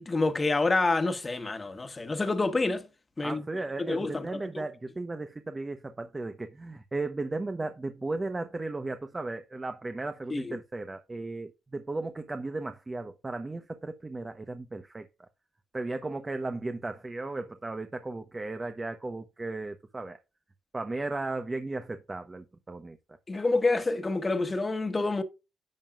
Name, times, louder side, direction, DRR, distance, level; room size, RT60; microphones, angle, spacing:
voice 1, 0.0-2.9 3.2-3.4 3.8-4.4 10.3-10.6 23.3-25.2, left 3 dB, 25° left, 1.5 m, -27 dB
voice 2, 3.2-15.1 15.7-20.2 20.7-23.0, right 2 dB, 20° right, 0.9 m, -35 dB
10.5 x 7.2 x 2.4 m
cardioid pair, 90°, 0 cm